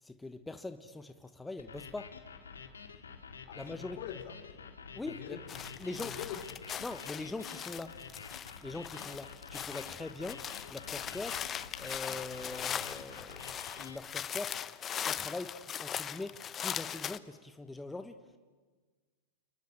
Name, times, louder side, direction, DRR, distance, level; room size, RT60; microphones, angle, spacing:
voice 1, 0.0-2.2 3.5-4.0 4.9-5.4 5.8-6.2 6.8-8.0 8.6-11.5 11.7-14.6 15.0-18.4, left 2 dB, 10° left, 9 dB, 1.2 m, -42 dB
sound 1, 1.6-14.0, left 5 dB, 85° left, 2.2 m, -49 dB
voice 2, 3.5-4.4 5.1-6.4, left 9 dB, 60° left, 6 dB, 3.4 m, -44 dB
sound 2, 5.5-17.2, left 9 dB, 30° left, 0.9 m, -40 dB
29.5 x 21.0 x 8.8 m, 1.4 s
hypercardioid pair, 100°, 0 cm